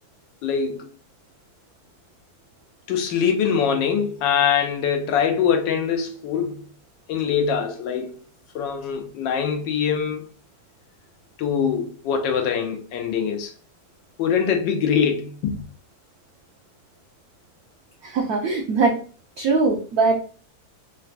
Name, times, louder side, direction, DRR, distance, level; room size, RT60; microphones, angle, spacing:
voice 1, 0.4-0.9 2.9-6.6 7.1-8.2 8.5-10.3 11.4-13.5 14.2-15.6, left 7 dB, 75° left, 1.2 m, -23 dB
voice 2, 18.0-18.9 19.4-20.2, right 4 dB, 85° right, 0.8 m, -21 dB
3.9 x 2.2 x 2.4 m
omnidirectional pair, 2.2 m